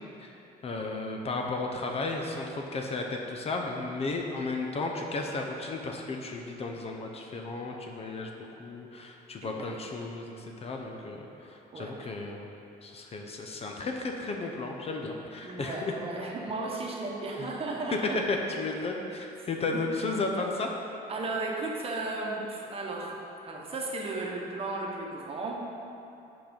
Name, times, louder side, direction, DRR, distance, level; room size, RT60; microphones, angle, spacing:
voice 1, 0.6-12.5 12.8-15.9 18.3-20.7, left 3 dB, 35° left, 2 dB, 0.6 m, -34 dB
voice 2, 9.4-9.7 11.7-12.1 15.4-18.2 19.7-19.8 21.1-23.2 23.4-25.6, right 2 dB, 35° right, -1 dB, 1.1 m, -35 dB
5.8 x 5.1 x 5.2 m, 2.9 s
cardioid pair, 110°, 17 cm